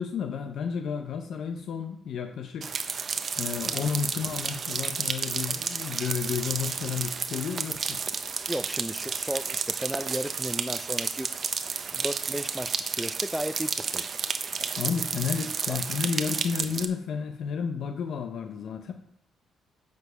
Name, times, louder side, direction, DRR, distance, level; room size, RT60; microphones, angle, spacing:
voice 1, 0.0-2.7 3.4-8.0 14.8-18.9, left 6 dB, 70° left, 5 dB, 0.7 m, -32 dB
sound 1, 2.6-16.9, right 5 dB, 50° right, 0.9 m, -31 dB
voice 2, 8.5-11.3 11.9-14.0 15.7-15.8, equal, 5° right, 14 dB, 0.5 m, -34 dB
9.3 x 4.9 x 6.7 m, 0.72 s
cardioid pair, 90°, 0 cm